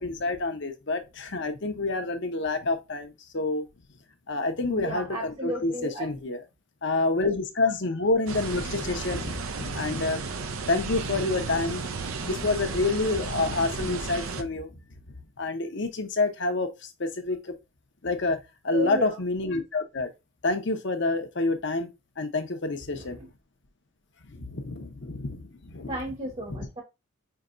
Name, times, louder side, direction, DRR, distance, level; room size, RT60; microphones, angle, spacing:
voice 1, 0.0-3.6 4.3-6.4 6.8-10.2 10.7-11.8 12.1-14.7 15.4-17.5 18.0-18.4 18.6-20.1 20.4-21.9 22.2-23.2 24.3-25.9 26.5-26.6, left 3 dB, 60° left, 0.9 m, -28 dB
voice 2, 4.7-6.1 18.7-19.2 22.9-23.3 25.9-26.8, right 1 dB, 30° right, 1.0 m, -34 dB
sound 1, 8.3-14.4, right 4 dB, 90° right, 0.7 m, -34 dB
5.7 x 2.9 x 2.5 m
head